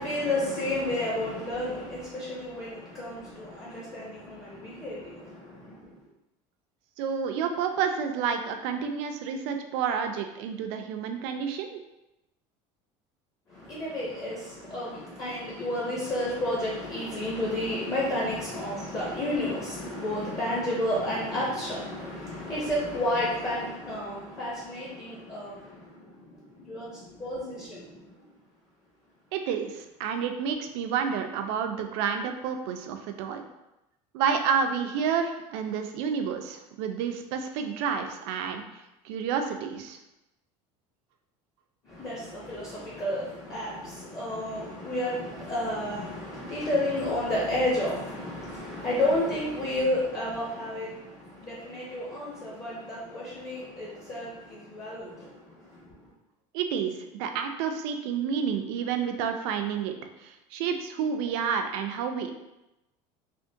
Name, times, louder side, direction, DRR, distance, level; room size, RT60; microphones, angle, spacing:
voice 1, 0.0-6.0 13.5-28.2 41.8-56.0, left 1 dB, 25° left, -7 dB, 0.6 m, -31 dB
voice 2, 7.0-11.8 29.3-33.4 34.1-38.6 39.0-40.0 56.5-62.3, right 7 dB, 75° right, 5 dB, 0.4 m, -30 dB
3.5 x 2.1 x 2.6 m, 0.93 s
cardioid pair, 165°, 14 cm